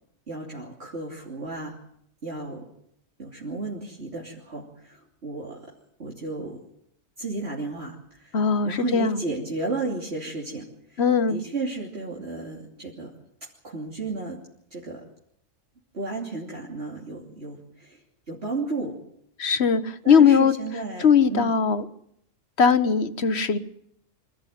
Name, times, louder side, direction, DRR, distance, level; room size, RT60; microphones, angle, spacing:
voice 1, 0.3-1.8 2.2-2.7 3.2-5.7 6.0-6.6 7.2-8.3 8.6-11.0 11.3-13.1 13.6-14.4 14.7-15.0 15.9-18.0 18.3-19.0 20.0-21.6, right 3 dB, 55° right, -3 dB, 3.3 m, -33 dB
voice 2, 8.3-9.2 11.0-11.4 19.4-20.5 21.0-21.9 22.6-23.6, left 6 dB, 55° left, 12 dB, 1.4 m, -20 dB
25.5 x 15.0 x 9.3 m, 0.71 s
omnidirectional pair, 1.4 m